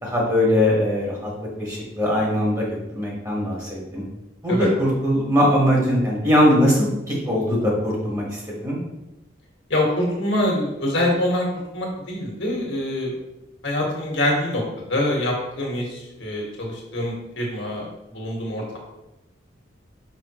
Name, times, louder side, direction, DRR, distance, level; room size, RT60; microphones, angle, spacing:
voice 1, 0.0-1.3 1.6-4.0 4.4-8.8, equal, 20° right, -4 dB, 1.4 m, -21 dB
voice 2, 9.7-13.1 13.6-14.6 14.9-18.8, left 1 dB, 75° left, -2 dB, 1.8 m, -25 dB
5.9 x 5.1 x 3.1 m, 0.94 s
head